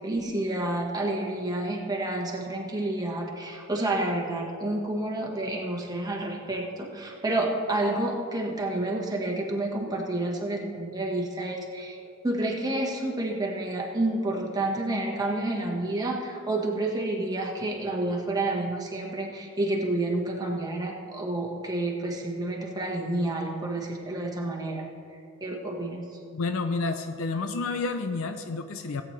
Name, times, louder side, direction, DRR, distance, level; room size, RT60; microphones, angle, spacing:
voice 1, 0.0-12.0 12.2-24.8 25.4-26.0, right 2 dB, 20° right, -1 dB, 1.4 m, -29 dB
voice 2, 26.3-29.0, left 3 dB, 80° left, 8 dB, 0.6 m, -30 dB
17.5 x 8.8 x 3.2 m, 2.4 s
head